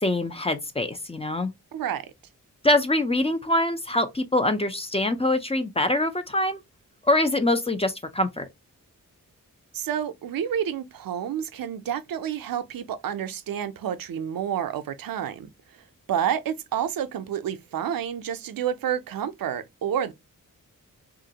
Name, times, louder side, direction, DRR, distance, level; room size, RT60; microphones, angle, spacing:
voice 1, 0.0-1.5 2.6-6.6 7.1-8.4, left 1 dB, 20° left, 0.5 m, -24 dB
voice 2, 1.7-2.0 9.7-15.5 16.1-20.1, right 9 dB, 85° right, 0.5 m, -29 dB
3.0 x 2.5 x 2.7 m
wide cardioid pair, 95°, 33 cm